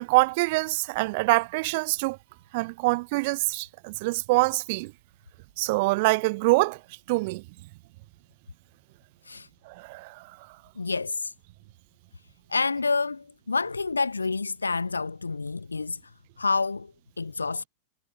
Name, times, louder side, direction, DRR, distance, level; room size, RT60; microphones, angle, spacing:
voice 1, 0.0-2.2 2.5-4.9 5.6-6.8 7.1-7.4 9.7-10.3, right 25 dB, 50° right, 7.6 m, -25 dB
voice 2, 10.8-11.3 12.5-16.0 16.4-16.9 17.2-17.6, left 4 dB, 80° left, 1.8 m, -28 dB
figure-of-eight pair, 90°, 0 cm